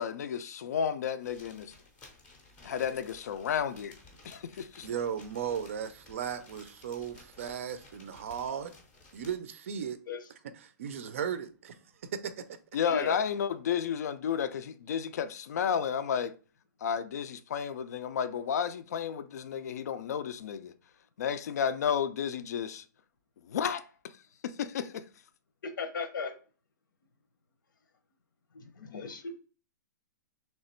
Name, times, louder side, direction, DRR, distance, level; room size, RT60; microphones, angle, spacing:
voice 1, 0.0-1.7 2.6-4.0 4.2-4.9 12.7-16.3 16.8-20.7 21.2-22.8 23.5-23.8 24.4-25.1, left 8 dB, 55° left, 0.4 m, -32 dB
sound 1, 1.2-9.4, left 2 dB, 10° left, 0.6 m, -56 dB
voice 2, 4.8-8.7 9.1-10.0 10.6-11.8 12.1-12.6, right 8 dB, 40° right, 0.4 m, -36 dB
voice 3, 12.8-13.2 25.6-26.3 28.5-29.3, left 5 dB, 90° left, 0.9 m, -36 dB
3.3 x 2.9 x 4.3 m
hypercardioid pair, 175°, 10 cm